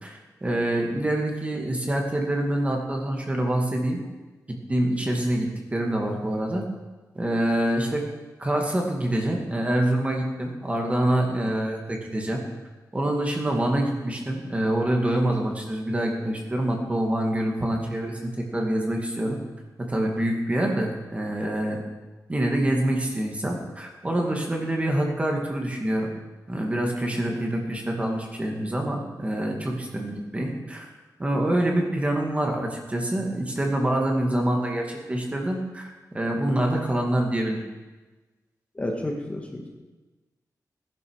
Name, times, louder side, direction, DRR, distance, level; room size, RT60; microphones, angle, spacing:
voice 1, 0.0-4.0 4.5-6.6 7.1-8.0 8.4-12.4 12.9-19.4 19.8-21.8 22.3-26.1 26.5-30.9 31.2-37.6, right 1 dB, 20° right, 1 dB, 2.3 m, -26 dB
voice 2, 38.8-39.7, left 1 dB, 20° left, 1 dB, 2.0 m, -31 dB
18.0 x 11.0 x 6.5 m, 1.2 s
wide cardioid pair, 175°, 7 cm